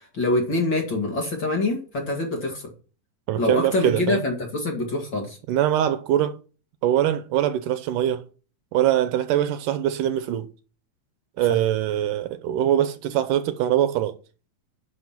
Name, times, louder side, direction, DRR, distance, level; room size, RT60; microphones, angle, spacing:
voice 1, 0.0-2.7 3.4-5.4 11.5-11.6, left 2 dB, 40° left, 2.3 m, -25 dB
voice 2, 3.3-4.2 5.5-6.4 6.8-8.3 8.7-10.5 11.4-14.1, right 11 dB, 80° right, 2.1 m, -23 dB
11.0 x 5.5 x 5.7 m
omnidirectional pair, 4.0 m